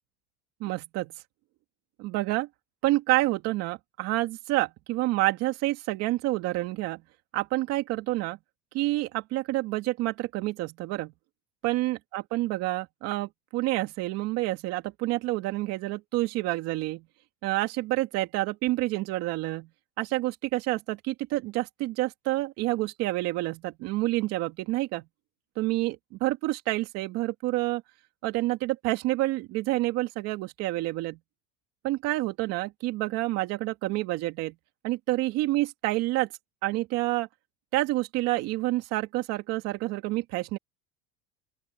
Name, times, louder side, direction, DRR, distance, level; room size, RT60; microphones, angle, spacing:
voice 1, 0.6-1.1 2.0-2.5 2.8-7.0 7.3-8.4 8.7-11.1 11.6-17.0 17.4-19.7 20.0-25.0 25.6-27.8 28.2-31.2 31.8-34.5 34.8-36.3 36.6-37.3 37.7-40.6, right 18 dB, 55° right, 2.5 m, -28 dB
open air
cardioid pair, 155°, 30 cm